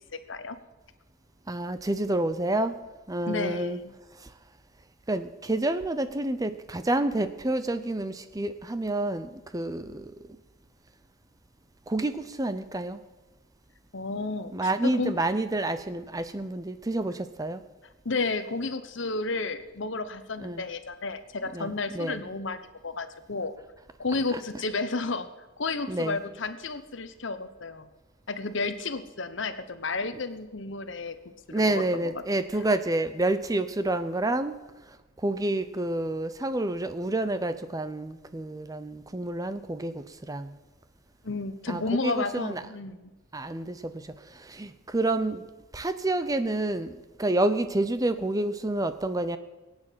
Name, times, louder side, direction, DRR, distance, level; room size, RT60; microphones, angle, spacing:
voice 1, 1.5-2.8 3.1-3.8 5.1-10.1 11.9-13.0 14.5-17.6 20.4-20.7 21.5-22.2 24.3-24.4 25.9-26.2 31.5-34.6 35.2-40.5 41.7-42.6 43.3-43.9 44.4-45.4 45.7-49.4, right 2 dB, 15° right, 12 dB, 0.6 m, -29 dB
voice 2, 3.3-3.9 13.9-15.2 18.0-23.5 24.0-25.3 25.6-27.9 28.3-31.2 31.5-32.1 41.2-43.1, left 3 dB, 60° left, 11 dB, 1.0 m, -32 dB
18.5 x 8.9 x 7.4 m, 1.1 s
head